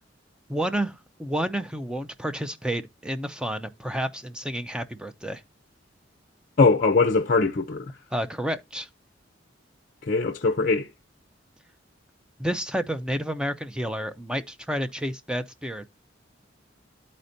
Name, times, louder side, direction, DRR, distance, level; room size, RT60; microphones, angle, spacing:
voice 1, 0.5-5.4 8.1-8.9 12.4-15.9, right 1 dB, 5° right, 0.5 m, -30 dB
voice 2, 6.6-7.9 10.1-10.9, left 4 dB, 45° left, 0.5 m, -21 dB
12.5 x 4.3 x 2.6 m
head